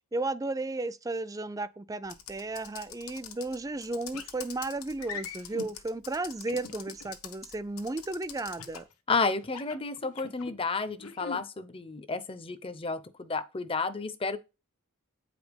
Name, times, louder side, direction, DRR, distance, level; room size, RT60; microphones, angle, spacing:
voice 1, 0.1-8.8, right 2 dB, 15° right, 0.4 m, -34 dB
Computer keyboard, 2.1-8.8, left 9 dB, 70° left, 1.2 m, -46 dB
sound 1, 4.1-4.3 5.0-5.7 6.5-7.1 8.6-8.9 9.4-10.5 11.0-11.4, left 5 dB, 90° left, 1.3 m, -40 dB
voice 2, 9.1-14.4, left 4 dB, 25° left, 0.6 m, -31 dB
8.7 x 5.0 x 5.2 m
head